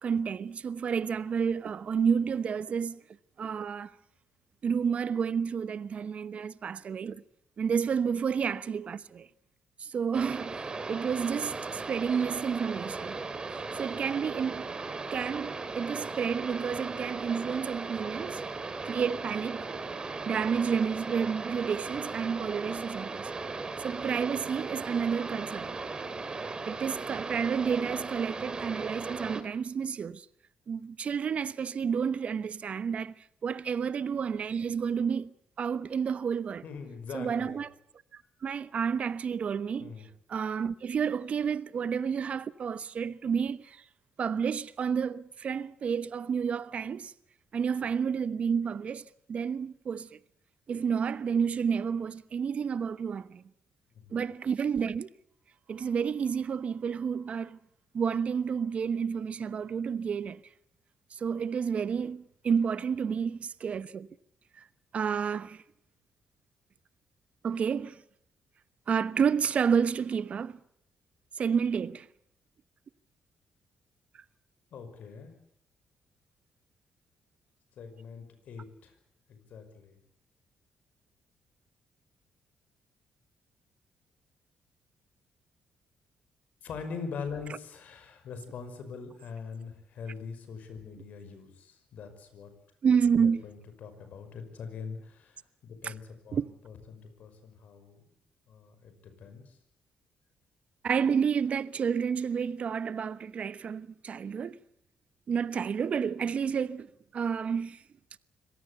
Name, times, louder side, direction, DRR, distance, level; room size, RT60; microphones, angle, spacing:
voice 1, 0.0-3.0 3.4-3.9 4.6-7.2 7.6-9.3 9.8-13.2 13.5-14.7 15.1-18.4 18.8-19.7 20.3-23.3 23.8-25.8 26.7-30.3 30.7-36.6 37.1-37.7 38.1-39.9 40.3-43.8 44.2-47.1 47.5-50.2 50.7-53.4 54.1-55.1 55.7-57.6 57.9-60.4 61.1-64.1 64.6-64.7 64.9-65.6 67.4-68.0 68.9-70.6 71.4-72.1 92.8-93.4 95.8-95.9 96.3-96.5 100.8-104.6 105.3-106.9 107.1-107.8, right 6 dB, 55° right, 1.0 m, -30 dB
sound 1, 10.1-29.4, right 3 dB, 30° right, 2.8 m, -37 dB
voice 2, 36.6-37.6 39.8-40.1 54.0-54.2 74.7-75.3 77.8-78.9 79.3-79.9 86.6-92.5 93.2-96.0 96.3-98.0 98.5-99.6, left 5 dB, 70° left, 5.6 m, -43 dB
25.5 x 17.0 x 8.2 m
cardioid pair, 80°, 3 cm